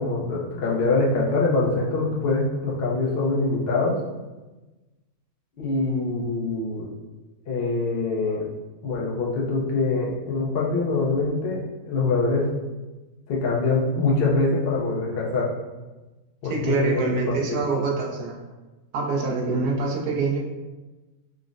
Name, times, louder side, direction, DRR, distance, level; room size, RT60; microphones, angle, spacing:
voice 1, 0.0-4.0 5.6-6.9 7.5-8.5 8.8-12.5 13.3-15.5 16.4-17.1 17.5-17.6 19.5-19.6, left 3 dB, 60° left, -3 dB, 0.6 m, -24 dB
voice 2, 16.5-18.4 18.9-20.4, right 4 dB, 90° right, -2 dB, 1.1 m, -25 dB
3.8 x 2.0 x 2.4 m, 1.2 s
omnidirectional pair, 1.5 m